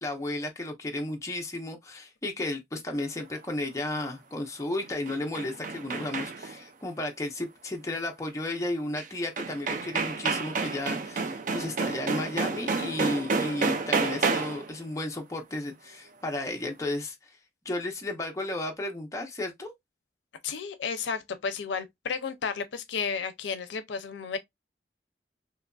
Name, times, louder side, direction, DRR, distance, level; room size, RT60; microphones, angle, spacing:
voice 1, 0.0-17.4 17.7-19.7, left 1 dB, 15° left, 0.5 m, -33 dB
sound 1, 4.8-6.6 9.0-9.1 9.4-14.7, right 4 dB, 45° right, 0.3 m, -30 dB
voice 2, 20.4-24.4, left 5 dB, 85° left, 0.5 m, -32 dB
2.9 x 2.4 x 2.2 m
head